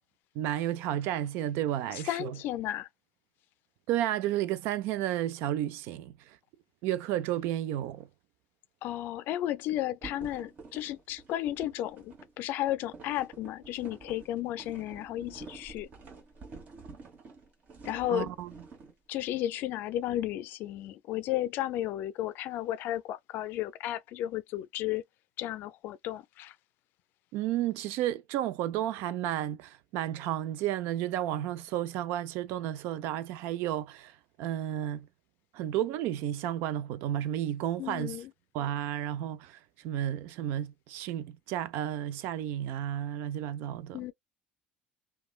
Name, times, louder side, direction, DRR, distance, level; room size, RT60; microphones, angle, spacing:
voice 1, 0.3-2.4 3.9-6.4 6.8-8.1 18.1-18.5 27.3-35.1 35.5-38.2 38.5-44.1, right 12 dB, 70° right, 0.4 m, -32 dB
voice 2, 1.9-2.9 8.8-15.9 17.8-18.3 19.1-25.0 25.4-26.5 37.8-38.3 43.9-44.1, left 13 dB, 65° left, 0.4 m, -33 dB
sound 1, 10.0-18.9, right 3 dB, 45° right, 1.4 m, -49 dB
3.0 x 2.2 x 2.3 m
supercardioid pair, 95°, 4 cm